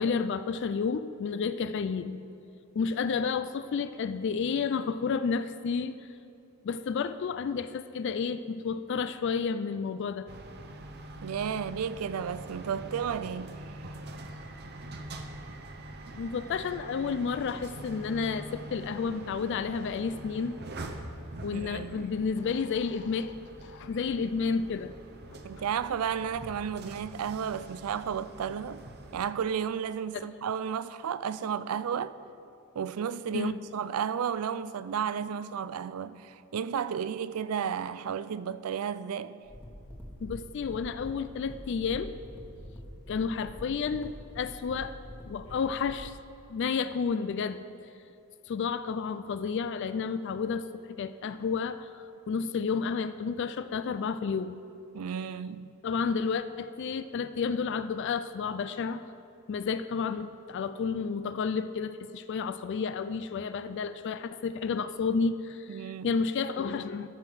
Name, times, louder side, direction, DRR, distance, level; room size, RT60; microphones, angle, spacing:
voice 1, 0.0-2.2 2.7-6.0 6.6-10.3 16.2-20.5 21.4-23.4 23.6-24.9 25.3-25.4 30.1-30.2 33.3-33.6 40.2-42.1 43.1-45.0 45.3-46.2 46.5-47.7 48.5-50.6 51.0-54.6 55.8-59.0 59.5-67.1, left 5 dB, 55° left, 0.3 m, -31 dB
sound 1, 10.3-29.3, right 1 dB, 45° right, 0.7 m, -44 dB
voice 2, 11.2-13.9 21.5-22.1 25.4-28.8 29.1-32.2 32.7-39.4 54.9-55.7 65.7-66.2, right 7 dB, 85° right, 0.4 m, -33 dB
sound 2, 39.5-46.1, equal, 10° left, 1.3 m, -45 dB
14.0 x 5.6 x 6.1 m
head